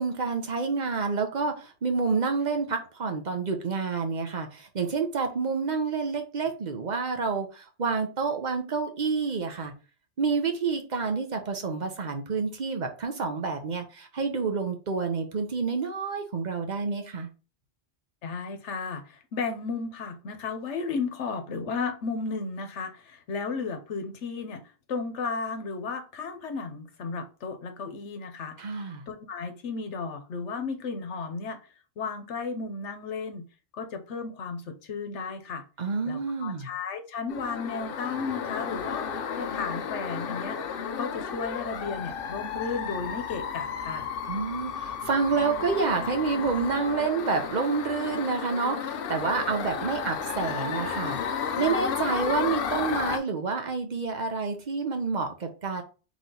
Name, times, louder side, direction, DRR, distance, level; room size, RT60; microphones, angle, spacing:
voice 1, 0.0-9.7 10.2-17.3 28.6-29.0 35.8-36.7 44.3-55.8, right 4 dB, 45° right, 0.8 m, -28 dB
voice 2, 18.2-24.6 24.9-28.6 29.1-31.6 32.0-33.5 33.7-35.6 36.1-39.1 39.4-40.6 41.0-44.1, left 4 dB, 85° left, 1.1 m, -34 dB
sound 1, 37.3-53.2, left 7 dB, 60° left, 0.7 m, -33 dB
4.1 x 3.2 x 3.8 m
omnidirectional pair, 1.2 m